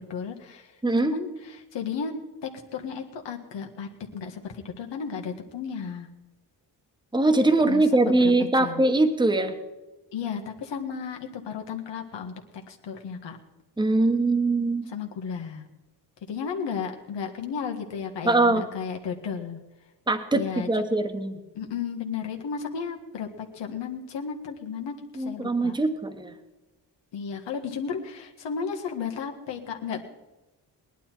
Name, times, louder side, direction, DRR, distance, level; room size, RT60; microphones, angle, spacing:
voice 1, 0.0-0.7 1.0-6.1 7.6-8.3 8.6-8.8 10.1-12.4 12.7-13.4 14.9-15.6 16.3-19.6 20.3-20.7 21.5-25.8 27.1-30.0, left 6 dB, 75° left, 3 dB, 1.7 m, -34 dB
voice 2, 0.8-1.2 7.1-9.5 13.8-14.9 18.2-18.7 20.1-21.4 25.2-26.3, right 2 dB, 10° right, 5 dB, 1.3 m, -22 dB
18.5 x 11.0 x 4.5 m, 1.1 s
cardioid pair, 60°, 43 cm